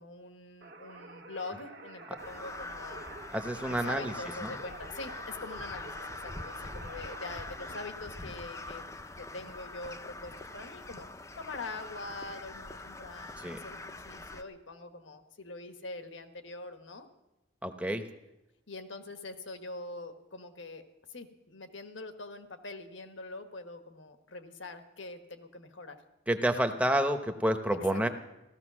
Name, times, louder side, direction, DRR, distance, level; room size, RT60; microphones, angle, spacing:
voice 1, 0.0-3.0 3.7-5.9 6.2-8.8 9.2-11.1 11.4-17.1 18.7-26.0 27.9-28.1, left 2 dB, 80° left, 7 dB, 1.3 m, -44 dB
sound 1, 0.6-7.8, right 2 dB, 80° right, 1.4 m, -49 dB
Crow, 2.2-14.4, left 2 dB, 15° left, 0.6 m, -43 dB
voice 2, 3.3-4.1 4.4-4.6 13.4-13.6 17.6-18.1 26.3-28.1, right 1 dB, 5° right, 6 dB, 0.9 m, -29 dB
16.0 x 14.0 x 6.2 m, 0.98 s
head